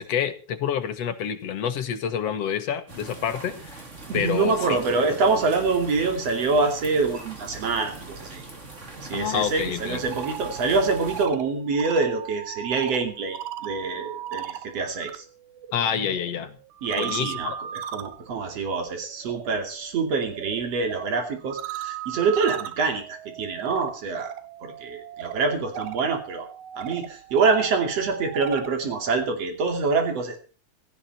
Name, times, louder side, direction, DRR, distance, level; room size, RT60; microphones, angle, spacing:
voice 1, 0.0-3.5 4.1-4.8 9.1-10.0 15.7-16.6 17.0-17.6, left 8 dB, 60° left, 8 dB, 2.4 m, -27 dB
sound 1, 2.9-11.3, right 3 dB, 25° right, 2.7 m, -41 dB
voice 2, 4.1-8.4 9.0-15.2 16.8-24.3 24.6-26.5 26.8-30.4, right 4 dB, 60° right, 6 dB, 3.8 m, -25 dB
sound 2, 9.9-15.2 15.5-28.8, right 11 dB, 85° right, 2.5 m, -38 dB
16.5 x 14.5 x 4.4 m, 0.36 s
omnidirectional pair, 3.3 m